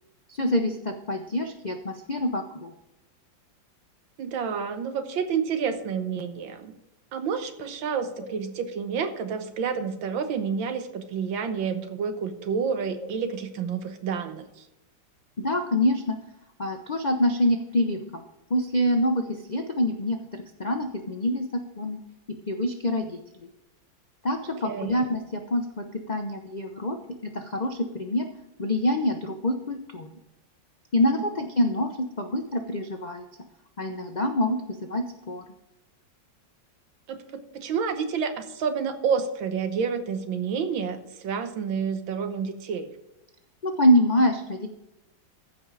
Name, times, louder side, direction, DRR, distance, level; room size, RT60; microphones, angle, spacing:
voice 1, 0.3-2.7 8.2-8.3 15.4-16.2 16.6-18.2 18.5-22.0 22.5-23.2 24.2-27.0 27.2-28.3 28.6-30.1 30.9-33.2 33.8-35.4 43.6-44.7, left 1 dB, 70° left, 4 dB, 0.4 m, -26 dB
voice 2, 4.2-6.7 7.1-14.6 24.6-25.0 31.1-31.2 37.1-37.2 37.5-42.9, right 6 dB, 90° right, 8 dB, 1.8 m, -29 dB
14.5 x 5.4 x 4.8 m, 0.92 s
omnidirectional pair, 2.1 m